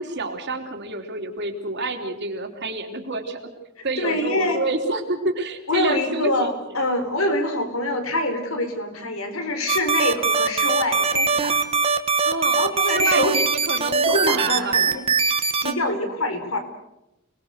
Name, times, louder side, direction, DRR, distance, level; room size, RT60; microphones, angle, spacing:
voice 1, 0.0-3.4 3.8-6.8 12.2-15.0, right 2 dB, 55° right, 4 dB, 3.3 m, -28 dB
voice 2, 4.0-4.6 5.7-11.6 12.5-13.4 13.7-13.8 14.1-15.0 15.5-16.6, left 1 dB, 85° left, 7 dB, 4.4 m, -25 dB
sound 1, 9.7-15.7, right 5 dB, 30° right, 1.6 m, -21 dB
30.0 x 20.5 x 6.6 m, 0.88 s
head